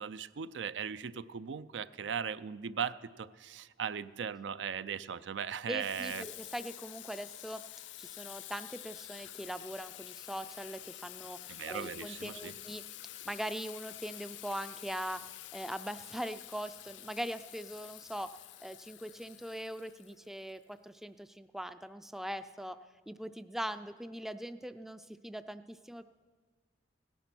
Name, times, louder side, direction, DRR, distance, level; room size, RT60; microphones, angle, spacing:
voice 1, 0.0-6.3 11.5-12.5, right 7 dB, 80° right, 15 dB, 0.5 m, -38 dB
voice 2, 5.7-7.6 8.0-12.8 13.3-15.2 15.5-18.3 18.6-22.8 23.1-26.0, equal, ahead, 12 dB, 0.3 m, -41 dB
Water tap faucet / Sink (filling or washing), 5.8-20.6, left 14 dB, 80° left, 0.5 m, -48 dB
17.0 x 11.0 x 6.0 m, 1.5 s
head